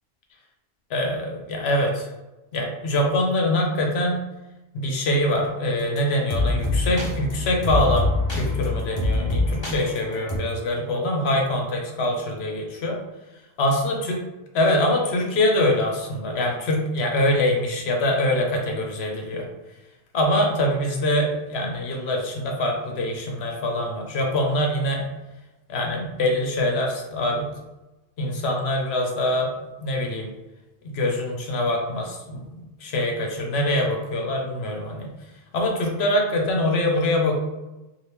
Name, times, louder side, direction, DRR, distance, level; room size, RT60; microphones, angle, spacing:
voice 1, 0.9-2.1 2.5-4.3 4.7-13.0 13.6-14.2 14.5-19.4 20.1-25.1 25.7-27.5 28.2-29.5 29.8-30.3 30.8-32.4 32.8-35.1 35.5-37.4, left 1 dB, 65° left, 1 dB, 0.9 m, -24 dB
sound 1, 5.3-5.4 6.0-6.1 6.3-10.4, left 2 dB, 25° left, 0.7 m, -25 dB
2.9 x 2.5 x 3.4 m, 1.0 s
omnidirectional pair, 1.2 m